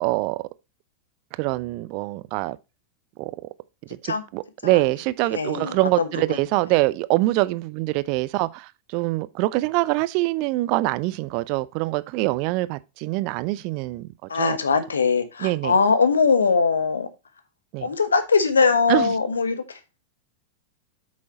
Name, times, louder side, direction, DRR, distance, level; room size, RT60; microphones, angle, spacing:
voice 1, 0.0-0.4 1.4-2.6 3.2-3.3 3.9-14.1 14.3-14.6 15.4-15.7 17.7-17.9 18.9-19.1, right 20 dB, 45° right, 0.5 m, -24 dB
voice 2, 5.3-6.4 14.3-17.1 17.8-19.8, left 5 dB, 70° left, 1.2 m, -21 dB
8.5 x 6.3 x 2.9 m
figure-of-eight pair, 90°, 0 cm